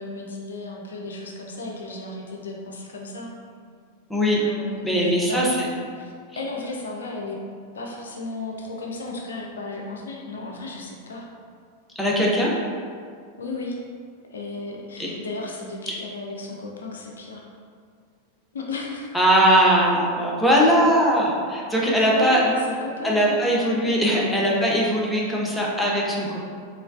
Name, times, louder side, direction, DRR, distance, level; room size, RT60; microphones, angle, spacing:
voice 1, 0.0-3.3 4.4-5.5 6.0-7.4 7.7-11.3 13.4-13.8 14.3-17.5 18.5-19.2 21.7-23.4, left 3 dB, 70° left, -1 dB, 0.4 m, -34 dB
voice 2, 4.1-4.4 4.8-5.5 12.0-12.5 15.0-15.1 19.1-22.4 23.0-26.4, equal, 5° left, -4 dB, 0.5 m, -20 dB
3.1 x 3.0 x 2.4 m, 2.1 s
figure-of-eight pair, 90°, 0 cm